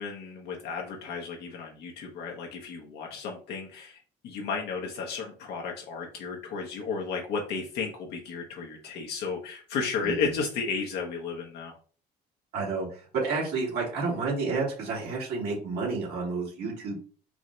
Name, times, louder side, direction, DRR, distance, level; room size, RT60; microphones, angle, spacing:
voice 1, 0.0-11.8, left 5 dB, 75° left, 0 dB, 0.9 m, -33 dB
voice 2, 10.0-10.4 12.5-17.0, right 4 dB, 70° right, -4 dB, 2.2 m, -30 dB
4.8 x 2.1 x 3.8 m, 0.41 s
cardioid pair, 110°, 17 cm